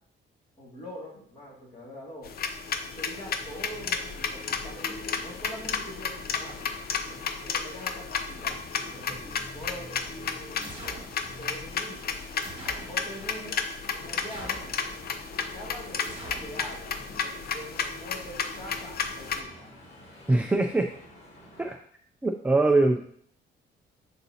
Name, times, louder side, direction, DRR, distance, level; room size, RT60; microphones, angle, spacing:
voice 1, 0.6-2.3 2.9-11.0 11.4-12.1 12.9-13.7 13.9-14.6 15.3-19.7, equal, 25° left, -4 dB, 2.2 m, -44 dB
sound 1, 2.2-19.4, left 6 dB, 50° left, 0.6 m, -33 dB
sound 2, 3.1-21.8, left 1 dB, 75° left, 2.0 m, -50 dB
sound 3, 10.6-11.1 12.4-13.0 14.3-14.8 16.0-16.5, right 3 dB, 25° right, 1.6 m, -43 dB
voice 2, 20.3-20.9 21.6-21.8 22.2-23.0, right 2 dB, 5° right, 4 dB, 0.3 m, -22 dB
10.5 x 4.0 x 2.8 m, 0.62 s
cardioid pair, 165°, 20 cm